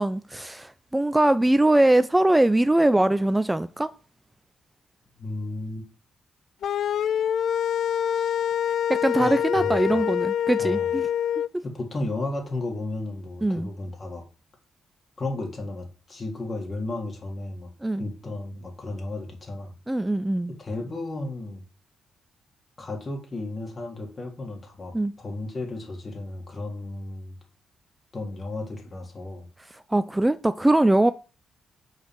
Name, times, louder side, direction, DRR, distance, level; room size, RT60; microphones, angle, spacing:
voice 1, 0.0-3.9 8.9-11.1 11.5-11.6 13.4-13.7 17.8-18.1 19.9-20.5 24.9-25.1 29.7-31.1, right 1 dB, 15° right, 0.6 m, -22 dB
voice 2, 5.2-5.8 9.2-10.0 10.6-10.9 11.6-14.2 15.2-17.7 18.0-19.7 20.6-21.6 22.8-24.9 25.2-27.4 28.1-29.5, left 2 dB, 40° left, 3.7 m, -34 dB
sound 1, 6.6-11.5, left 9 dB, 65° left, 0.4 m, -25 dB
6.6 x 5.6 x 6.0 m
hypercardioid pair, 40°, 0 cm